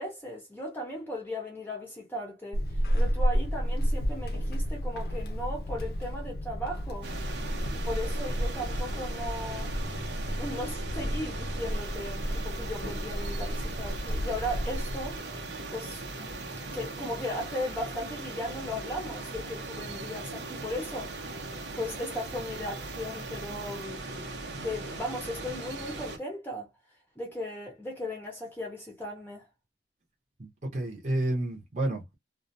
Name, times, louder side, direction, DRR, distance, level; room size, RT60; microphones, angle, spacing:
voice 1, 0.0-7.1 7.7-9.7 10.3-15.2 15.7-16.0 16.7-21.4 21.7-24.0 24.6-26.7 27.2-29.5, left 1 dB, 10° left, 0.6 m, -37 dB
Walk footsteps / Squeak, 2.5-15.2, equal, 60° left, 0.4 m, -31 dB
sound 1, 7.0-26.2, right 2 dB, 80° right, 0.8 m, -39 dB
voice 2, 30.4-32.1, right 1 dB, 40° right, 0.8 m, -30 dB
2.4 x 2.2 x 2.5 m
head